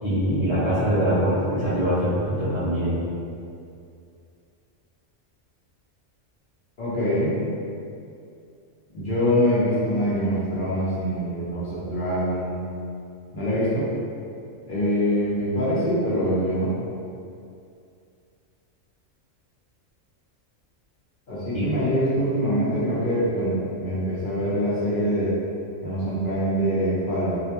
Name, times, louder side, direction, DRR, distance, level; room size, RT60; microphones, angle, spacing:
voice 1, 0.0-2.9 21.5-21.7, equal, 35° right, -14 dB, 0.5 m, -23 dB
voice 2, 6.8-7.4 8.9-12.6 13.3-13.9 14.7-16.7 21.3-25.3 25.8-27.4, equal, 55° left, -9 dB, 0.6 m, -24 dB
2.4 x 2.1 x 2.8 m, 2.5 s
omnidirectional pair, 1.3 m